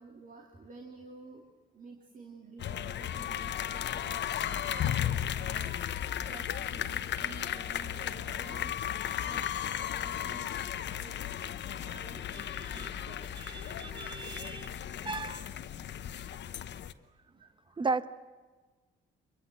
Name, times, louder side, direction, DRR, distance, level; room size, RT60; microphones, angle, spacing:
voice 1, 0.0-5.8 6.1-8.8 9.2-13.3 13.6-15.1 17.2-17.5, right 4 dB, 40° right, 2 dB, 2.7 m, -51 dB
sound 1, 2.6-16.9, left 10 dB, 65° left, 1.0 m, -35 dB
voice 2, 12.6-12.9 13.4-14.8 15.0-15.5 17.8-18.1, right 4 dB, 25° right, 13 dB, 1.1 m, -36 dB
25.5 x 22.5 x 7.8 m, 1.3 s
cardioid pair, 90°, 20 cm